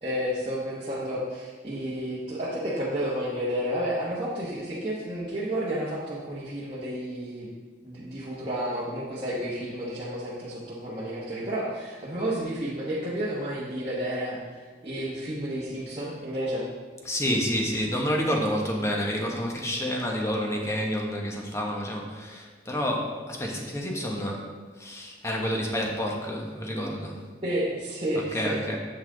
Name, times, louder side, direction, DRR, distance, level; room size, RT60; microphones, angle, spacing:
voice 1, 0.0-7.5 7.8-16.6 27.4-28.6, equal, 30° right, -8 dB, 1.0 m, -31 dB
voice 2, 17.0-24.5 24.8-27.2 28.3-28.8, equal, 15° left, 0 dB, 0.9 m, -29 dB
7.7 x 5.6 x 3.8 m, 1.4 s
head